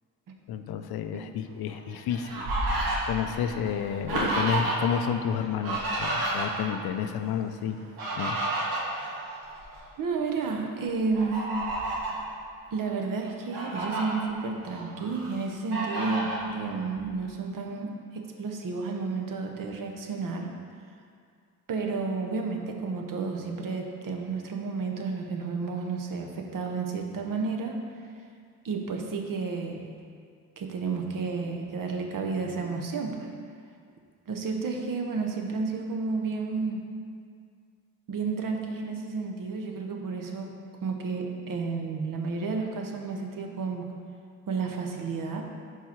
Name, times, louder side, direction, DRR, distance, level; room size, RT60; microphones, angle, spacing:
voice 1, 0.5-2.5 2.7-7.8 8.2-8.4, left 8 dB, 75° left, 9 dB, 0.5 m, -30 dB
Fowl, 1.7-5.0 5.3-6.8 7.7-9.8 10.3-10.5 11.1-12.2 12.8-12.9 13.3-14.0 14.6-15.3 15.7-16.4, right 2 dB, 80° right, 1.6 m, -31 dB
voice 2, 10.0-11.5 12.7-20.5 21.7-27.8 28.6-29.9 30.6-33.3 34.3-36.8 38.1-40.5 40.8-43.9 44.5-45.4, right 4 dB, 60° right, 2 dB, 0.8 m, -31 dB
4.7 x 4.4 x 5.8 m, 2.2 s
cardioid pair, 75°, 37 cm